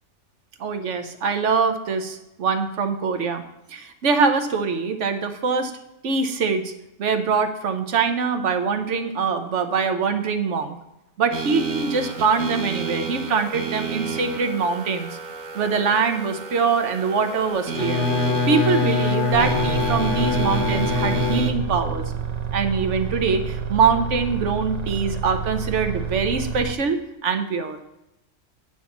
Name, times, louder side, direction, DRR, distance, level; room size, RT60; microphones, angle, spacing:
voice 1, 0.6-3.4 3.7-5.7 6.0-6.7 7.0-10.7 11.2-15.1 15.5-18.1 18.5-22.0 22.5-27.8, right 5 dB, 65° right, 7 dB, 1.2 m, -23 dB
sound 1, 11.3-21.5, right 6 dB, 85° right, 1.2 m, -31 dB
Bowed string instrument, 17.7-22.0, left 4 dB, 70° left, 1.0 m, -24 dB
sound 2, 19.3-26.7, right 7 dB, 40° right, 0.6 m, -29 dB
9.0 x 4.5 x 7.0 m, 0.91 s
omnidirectional pair, 1.4 m